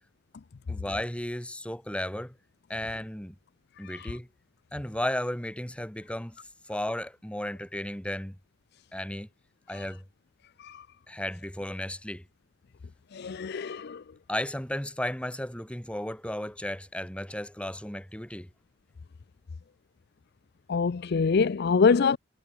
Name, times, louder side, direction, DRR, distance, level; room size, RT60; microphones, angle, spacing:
voice 1, 0.7-2.3 2.7-3.3 3.8-4.3 4.7-6.4 6.7-8.4 8.9-9.3 9.7-10.0 11.1-12.2 14.3-18.5, left 1 dB, 5° left, 2.3 m, -34 dB
voice 2, 13.1-14.0 20.7-22.2, left 5 dB, 55° left, 0.5 m, -25 dB
head